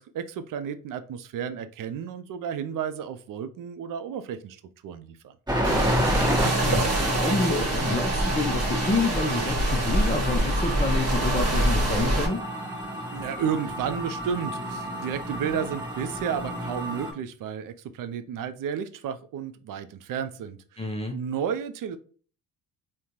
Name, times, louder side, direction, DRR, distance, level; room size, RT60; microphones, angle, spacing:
voice 1, 0.0-5.3 13.1-20.9 21.1-22.0, right 8 dB, 50° right, 11 dB, 0.5 m, -32 dB
sound 1, 5.5-17.1, equal, 10° right, 1.1 m, -30 dB
sound 2, 5.6-12.3, right 1 dB, 35° right, 1.2 m, -25 dB
voice 2, 5.7-12.4 20.8-21.2, left 3 dB, 15° left, 2 dB, 0.4 m, -29 dB
3.6 x 2.2 x 2.9 m, 0.43 s
supercardioid pair, 70°, 44 cm